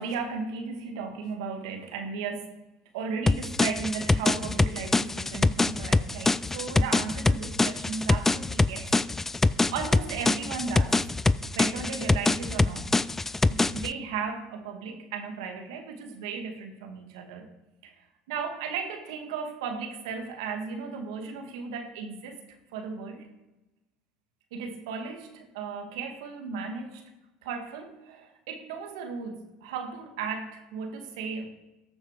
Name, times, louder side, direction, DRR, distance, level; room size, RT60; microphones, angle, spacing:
voice 1, 0.0-2.5 2.9-8.9 9.7-11.0 11.6-12.9 13.5-17.5 17.8-17.9 18.3-22.4 22.7-23.3 24.5-27.0 27.4-31.5, right 5 dB, 80° right, 4 dB, 2.1 m, -35 dB
sound 1, 3.3-13.9, left 3 dB, 15° left, 0.4 m, -24 dB
14.0 x 6.7 x 4.9 m, 1.0 s
hypercardioid pair, 85°, 3 cm